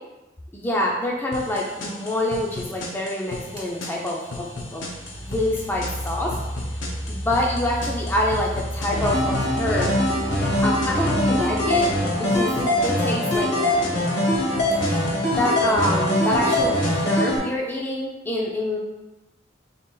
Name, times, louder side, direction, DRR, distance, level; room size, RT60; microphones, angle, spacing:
voice 1, 0.5-4.8 5.2-6.3 7.1-9.9 10.6-14.3 14.8-18.8, left 1 dB, 10° left, -3 dB, 0.4 m, -26 dB
sound 1, 1.3-17.3, left 2 dB, 85° left, 0.6 m, -37 dB
sound 2, 3.6-3.8 4.7-12.7, equal, 60° right, 1.0 m, -33 dB
sound 3, 8.9-17.4, left 1 dB, 60° left, 0.9 m, -22 dB
3.9 x 2.3 x 3.7 m, 1.0 s
head